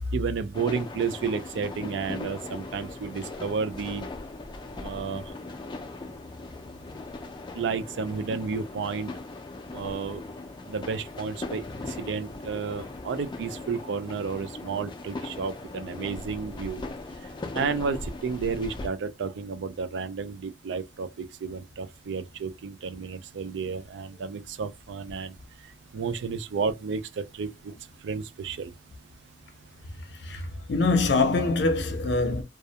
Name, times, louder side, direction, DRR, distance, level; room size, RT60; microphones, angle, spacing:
voice 1, 0.1-4.0 4.8-5.2 7.6-9.1 9.7-10.2 10.7-16.8 17.5-25.3 25.9-27.7 28.0-28.7, right 5 dB, 90° right, 0.4 m, -32 dB
sound 1, 0.5-18.9, left 2 dB, 25° left, 0.3 m, -39 dB
voice 2, 30.2-32.4, left 3 dB, 75° left, 0.6 m, -24 dB
2.3 x 2.1 x 2.7 m
head